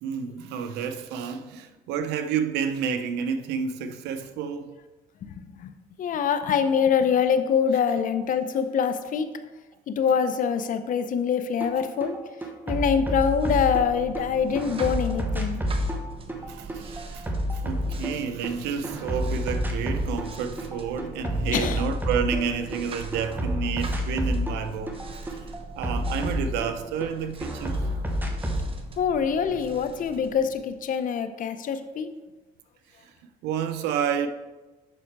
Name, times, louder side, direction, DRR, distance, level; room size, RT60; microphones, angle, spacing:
voice 1, 0.0-4.8 16.5-17.3 17.5-24.9 25.3-28.0 33.0-33.1 33.4-34.3, right 7 dB, 90° right, 0.7 m, -30 dB
voice 2, 5.2-5.7 6.0-9.3 9.9-12.2 12.7-15.6 21.5-21.8 29.0-32.1, left 7 dB, 50° left, 0.7 m, -24 dB
sound 1, 11.6-11.7 12.0-14.2 14.6-18.5 18.8-20.3 20.6-22.8 23.1-27.1 27.4-28.7, equal, 10° right, 1.1 m, -29 dB
sound 2, 13.1-30.9, right 4 dB, 30° right, 1.0 m, -42 dB
7.6 x 5.8 x 4.6 m
cardioid pair, 110°, 17 cm